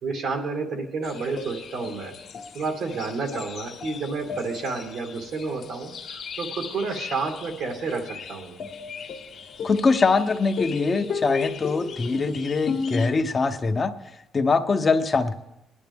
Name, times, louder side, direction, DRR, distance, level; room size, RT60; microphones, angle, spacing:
voice 1, 0.0-2.1 2.5-8.6, right 4 dB, 70° right, 3 dB, 2.3 m, -30 dB
sound 1, 1.0-13.1, left 5 dB, 60° left, 1.3 m, -35 dB
voice 2, 9.6-13.9 14.3-15.3, left 4 dB, 35° left, 7 dB, 0.9 m, -23 dB
21.0 x 11.0 x 3.6 m, 0.89 s
cardioid pair, 90°, 0 cm